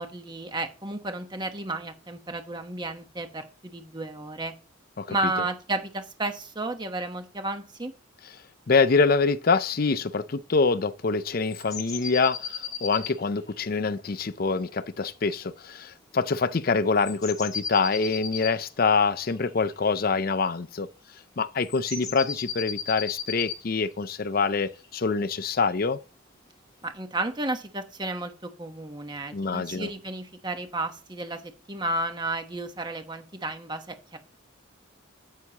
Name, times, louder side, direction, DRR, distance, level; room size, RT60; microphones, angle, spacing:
voice 1, 0.0-4.5 5.1-7.9 26.8-34.2, right 2 dB, 20° right, 1.1 m, -32 dB
voice 2, 8.7-20.9 21.4-26.0 29.3-29.9, left 4 dB, 45° left, 0.5 m, -25 dB
sound 1, 11.4-13.5 17.0-20.3 21.6-23.6 24.6-25.8 26.8-26.9, left 7 dB, 20° left, 1.7 m, -36 dB
9.3 x 8.4 x 2.9 m
head